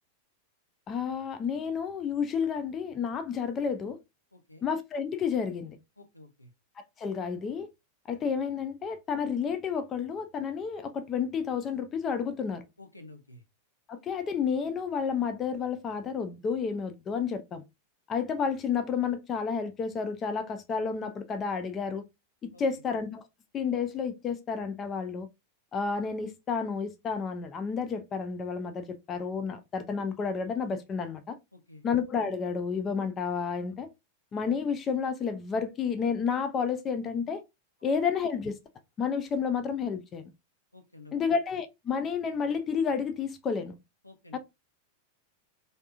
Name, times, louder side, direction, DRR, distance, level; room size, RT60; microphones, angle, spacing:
voice 1, 0.9-4.0 4.6-5.8 6.8-7.7 8.1-12.6 13.9-17.6 18.1-22.0 22.4-23.2 23.5-25.3 25.7-31.4 31.8-33.9 34.3-37.4 37.8-38.6 39.0-40.3 41.1-43.8 44.3-44.4, left 6 dB, 25° left, 0.4 m, -31 dB
voice 2, 4.3-4.6 6.0-6.5 12.8-13.4 22.5-22.6 31.5-31.8 40.7-41.1 44.0-44.4, left 2 dB, 85° left, 0.6 m, -51 dB
3.3 x 2.7 x 2.4 m
figure-of-eight pair, 90°, 0 cm